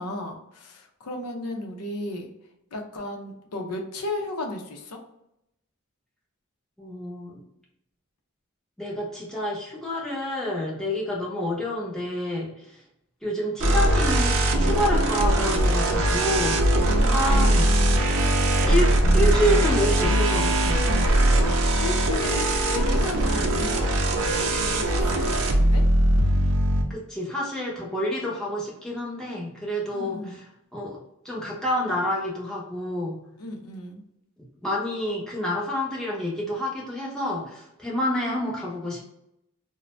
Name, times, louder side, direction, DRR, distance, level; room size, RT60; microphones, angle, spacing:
voice 1, 0.0-2.3 2.7-5.0 16.9-18.0 21.3-25.8 29.9-30.4 33.4-34.0, left 2 dB, 85° left, 2 dB, 0.6 m, -35 dB
voice 2, 6.8-7.4 8.8-12.5 13.2-17.7 18.6-20.8 26.9-30.4 30.7-31.0 31.2-33.2 34.6-39.0, left 1 dB, 5° left, -5 dB, 0.6 m, -28 dB
sound 1, 13.6-26.8, right 1 dB, 60° right, 0.4 m, -21 dB
2.5 x 2.0 x 3.1 m, 0.82 s
head